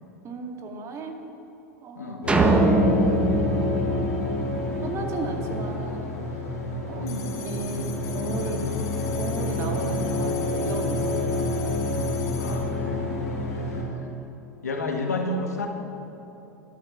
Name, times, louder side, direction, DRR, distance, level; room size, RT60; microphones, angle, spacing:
voice 1, 0.2-1.2 1.8-2.9 3.4-4.5 4.8-6.1 6.9-7.1 7.4-8.6 9.1-11.3, right 3 dB, 35° right, 3 dB, 2.1 m, -36 dB
sound 1, 2.2-13.8, left 2 dB, 60° left, 3.8 m, -28 dB
sound 2, 2.3-4.8, right 2 dB, 10° right, 1.5 m, -22 dB
sound 3, 7.1-12.6, left 7 dB, 40° left, 3.5 m, -42 dB
voice 2, 12.4-13.1 13.5-13.9 14.6-15.7, left 2 dB, 80° left, 3 dB, 1.8 m, -31 dB
12.5 x 11.5 x 7.3 m, 3.0 s
figure-of-eight pair, 85°, 9 cm